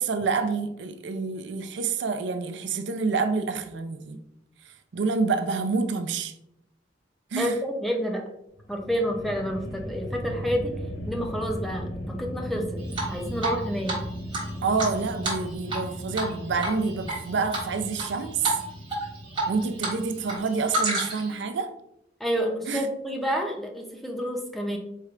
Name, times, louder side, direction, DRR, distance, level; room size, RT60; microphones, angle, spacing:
voice 1, 0.0-4.2 4.7-6.3 7.3-7.6 14.6-18.5 19.5-21.7 22.7-22.9, right 4 dB, 80° right, 0.4 m, -28 dB
voice 2, 7.4-8.2 8.7-10.7 11.1-14.0 22.2-24.8, equal, ahead, 0.5 m, -29 dB
sound 1, 8.5-20.9, equal, 80° left, 0.7 m, -37 dB
Drip, 12.9-13.6 13.9-14.0 14.3-15.9 16.1-16.3 16.6-17.2 17.5-18.1 18.4-18.6 18.9-19.9 20.2-21.3, right 2 dB, 25° right, 1.5 m, -29 dB
4.5 x 3.2 x 2.4 m
head